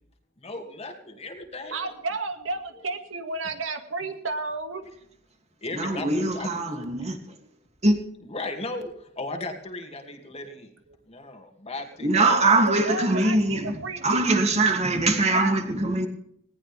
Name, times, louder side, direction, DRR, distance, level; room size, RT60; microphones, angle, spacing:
voice 1, 0.4-1.9 2.7-2.8 4.0-4.1 5.6-7.1 8.2-10.7 11.1-12.2, left 2 dB, 35° left, 2.5 m, -36 dB
voice 2, 1.7-4.8 7.4-7.5 12.0-14.2 15.3-15.5, right 3 dB, 85° right, 2.3 m, -32 dB
voice 3, 5.7-7.2 7.8-8.0 12.0-13.7 14.0-16.1, right 2 dB, 35° right, 2.7 m, -22 dB
20.0 x 18.5 x 3.5 m
head